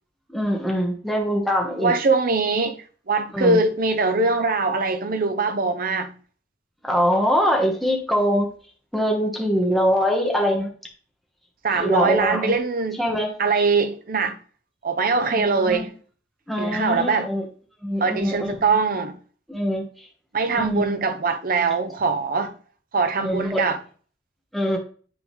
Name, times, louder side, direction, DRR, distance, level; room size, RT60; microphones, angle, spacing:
voice 1, 0.3-1.9 3.3-3.6 6.8-8.5 8.9-10.7 11.8-12.6 13.0-13.3 15.3-15.8 16.5-17.4 17.8-18.6 19.5-19.8 20.5-21.0 23.2-23.6 24.5-24.8, equal, ahead, 1.7 m, -23 dB
voice 2, 1.8-6.1 11.6-13.0 13.4-14.4 14.8-15.9 16.6-17.3 18.0-19.2 20.3-22.5 22.9-23.8, right 4 dB, 50° right, 0.8 m, -22 dB
10.5 x 3.9 x 3.3 m
head